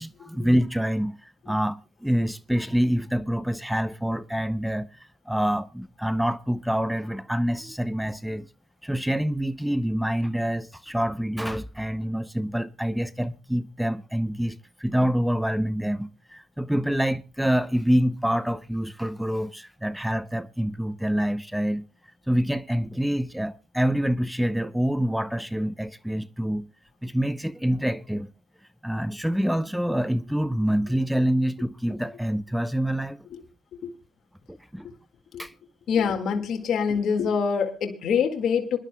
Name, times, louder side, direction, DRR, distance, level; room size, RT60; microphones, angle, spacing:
voice 1, 0.0-4.9 5.3-8.5 8.8-21.8 22.3-26.7 27.0-28.3 28.8-33.2 34.5-34.9 35.4-35.5, equal, 5° right, 0.6 m, -26 dB
voice 2, 35.9-38.8, left 6 dB, 70° left, 1.9 m, -25 dB
26.5 x 11.5 x 2.2 m
cardioid pair, 90°, 0 cm